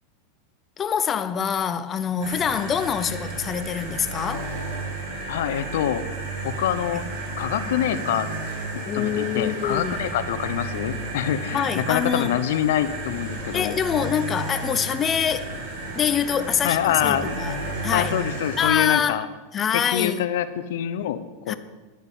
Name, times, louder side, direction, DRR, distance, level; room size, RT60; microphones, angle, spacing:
voice 1, 0.8-4.5 8.9-10.2 11.5-12.3 13.5-15.5 16.0-17.6 17.8-18.2 18.6-19.3 19.5-20.2 21.5-21.6, left 8 dB, 25° left, 0.6 m, -25 dB
sound 1, 2.2-18.7, right 2 dB, 75° right, 4.4 m, -32 dB
voice 2, 5.3-6.0 6.4-7.0 7.4-8.3 8.7-13.8 16.6-17.4 17.9-19.3 19.7-21.5, left 11 dB, 75° left, 0.8 m, -25 dB
10.0 x 9.4 x 5.5 m
supercardioid pair, 130°, 0 cm